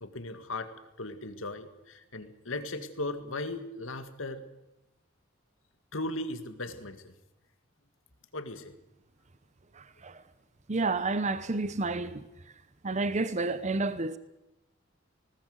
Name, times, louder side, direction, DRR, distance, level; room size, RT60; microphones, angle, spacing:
voice 1, 0.0-4.4 5.9-7.1 8.3-8.7, left 2 dB, 90° left, 2.1 m, -37 dB
voice 2, 10.7-12.2 12.8-14.2, right 3 dB, 35° right, 0.8 m, -29 dB
19.5 x 19.0 x 8.0 m
head